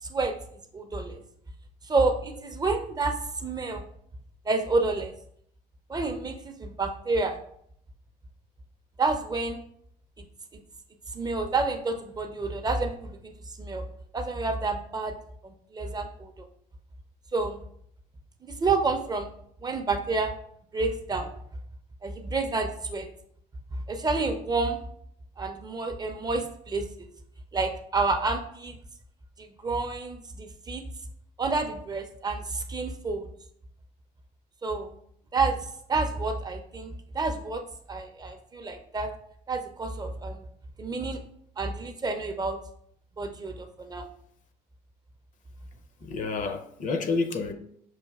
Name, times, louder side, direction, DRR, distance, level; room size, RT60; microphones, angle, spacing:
voice 1, 0.7-1.2 1.9-3.2 3.4-3.8 4.5-5.1 5.9-7.4 9.0-9.6 10.2-10.3 11.1-13.3 13.6-13.8 14.1-15.1 15.4-16.5 17.3-17.6 18.6-19.3 19.6-20.3 20.7-21.3 22.0-23.1 23.9-24.8 25.4-27.1 27.5-28.8 29.6-30.8 31.4-33.3 34.6-34.9 35.3-35.6 35.9-37.6 37.9-39.1 39.5-40.4 40.8-41.2 41.6-42.6 43.2-44.1, right 3 dB, 25° right, 0.4 m, -29 dB
voice 2, 46.0-47.5, left 4 dB, 50° left, 0.5 m, -29 dB
6.2 x 2.5 x 2.3 m
cardioid pair, 110°, 17 cm